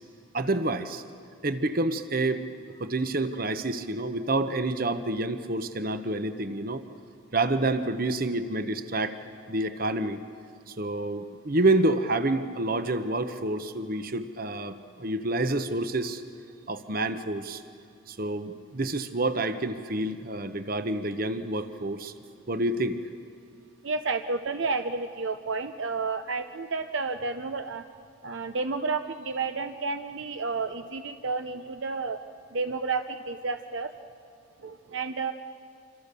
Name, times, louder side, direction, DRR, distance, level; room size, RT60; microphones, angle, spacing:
voice 1, 0.3-1.0 1.4-2.4 2.8-6.8 7.3-9.2 9.5-10.2 10.7-16.2 16.7-17.6 18.1-22.1 22.5-23.0, right 2 dB, 45° right, 10 dB, 1.0 m, -28 dB
voice 2, 23.8-27.8 28.2-32.2 32.5-33.9 34.6-35.3, right 4 dB, 65° right, 8 dB, 0.7 m, -31 dB
27.0 x 26.0 x 6.9 m, 2.3 s
head